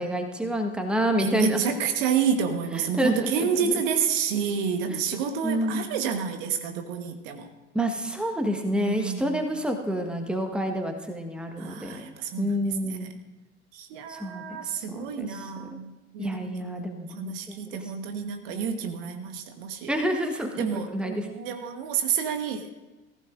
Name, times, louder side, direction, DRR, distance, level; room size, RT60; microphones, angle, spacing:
voice 1, 0.0-1.7 2.7-3.7 4.9-5.0 5.4-5.9 7.7-13.1 14.1-15.8 16.2-17.9 19.9-21.3, equal, 5° right, 4 dB, 1.3 m, -29 dB
voice 2, 1.2-7.5 8.7-9.4 11.6-13.1 13.7-19.9 20.5-22.7, right 7 dB, 55° right, 7 dB, 1.3 m, -29 dB
18.5 x 15.0 x 2.6 m, 1.1 s
figure-of-eight pair, 70°, 33 cm